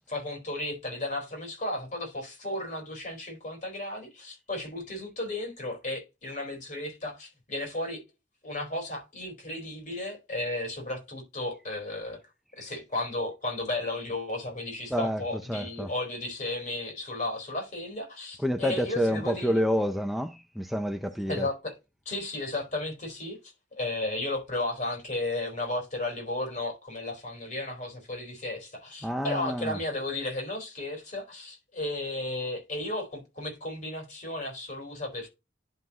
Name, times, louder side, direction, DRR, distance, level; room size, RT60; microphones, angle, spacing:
voice 1, 0.1-8.0 8.4-12.2 12.6-19.6 21.3-21.7 22.1-23.4 23.7-35.3, left 2 dB, 40° left, 4.1 m, -34 dB
voice 2, 14.9-15.9 18.4-21.5 29.0-29.8, equal, ahead, 0.5 m, -29 dB
10.5 x 5.7 x 2.9 m
head